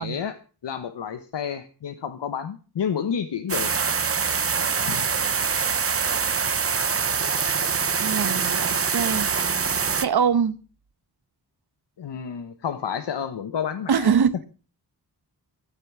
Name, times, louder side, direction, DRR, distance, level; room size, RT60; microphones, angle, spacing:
voice 1, 0.0-3.7 4.8-5.0 12.0-14.1, left 7 dB, 85° left, 1.2 m, -30 dB
sound 1, 3.5-10.1, right 6 dB, 35° right, 0.8 m, -24 dB
voice 2, 8.0-9.3 9.9-10.5 13.9-14.4, right 7 dB, 65° right, 1.2 m, -23 dB
15.5 x 9.2 x 6.2 m
wide cardioid pair, 135°, 41 cm